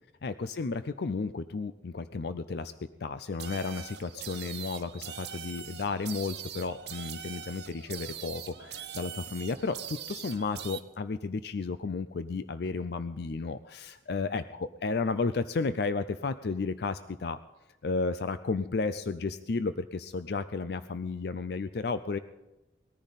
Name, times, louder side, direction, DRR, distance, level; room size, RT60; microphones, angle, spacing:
voice 1, 0.2-2.7 3.0-17.4 17.8-22.2, left 4 dB, 55° left, 12 dB, 0.5 m, -33 dB
sound 1, 3.4-10.8, right 9 dB, 60° right, 1.1 m, -42 dB
20.5 x 14.0 x 4.1 m, 1.0 s
head